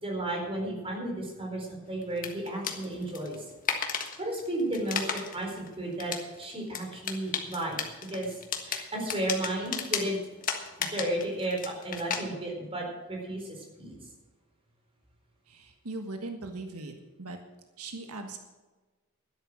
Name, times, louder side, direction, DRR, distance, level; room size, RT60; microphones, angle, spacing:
voice 1, 0.0-3.4 4.2-7.8 8.1-10.2 10.8-14.0, right 1 dB, 25° right, 0 dB, 4.2 m, -33 dB
sound 1, 2.0-12.2, left 6 dB, 40° left, 1.5 m, -35 dB
voice 2, 15.5-17.4 17.8-18.4, right 2 dB, 85° right, 5 dB, 1.5 m, -39 dB
12.5 x 10.5 x 6.1 m, 1.3 s
head